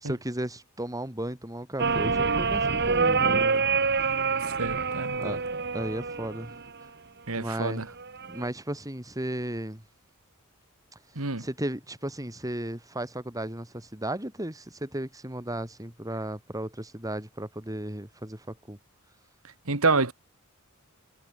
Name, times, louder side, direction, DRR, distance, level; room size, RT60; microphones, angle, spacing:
voice 1, 0.0-4.2 5.2-5.4 5.7-6.6 7.4-7.9 8.3-9.8 11.4-18.8, right 1 dB, 15° right, 4.3 m, -35 dB
sound 1, 1.8-6.8 8.0-8.5, right 4 dB, 50° right, 3.1 m, -26 dB
voice 2, 4.6-5.4 7.3-7.9 11.2-11.4 19.7-20.1, right 3 dB, 70° right, 2.1 m, -27 dB
head